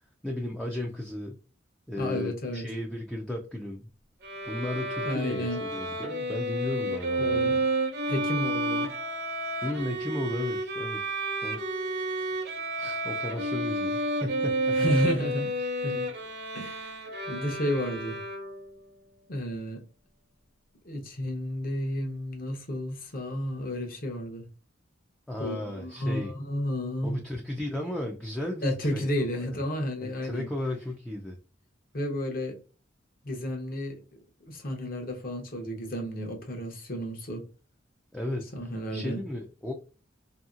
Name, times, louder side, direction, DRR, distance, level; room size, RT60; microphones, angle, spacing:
voice 1, 0.2-1.4 1.9-3.9 4.5-7.6 9.6-11.6 12.8-14.8 25.3-26.3 27.0-29.0 29.4-29.6 30.0-31.4 38.1-39.7, left 1 dB, 5° left, 0.3 m, -35 dB
voice 2, 2.0-2.6 5.1-5.6 7.2-7.6 8.1-8.9 14.7-15.5 15.8-16.1 16.5-16.9 17.3-18.2 19.3-19.8 20.8-24.5 25.4-27.2 28.6-30.5 31.9-32.6 33.2-34.0 34.4-37.5 38.5-39.2, equal, 50° left, 0.8 m, -32 dB
Bowed string instrument, 4.2-18.7, right 1 dB, 60° right, 0.8 m, -31 dB
2.8 x 2.7 x 2.4 m
head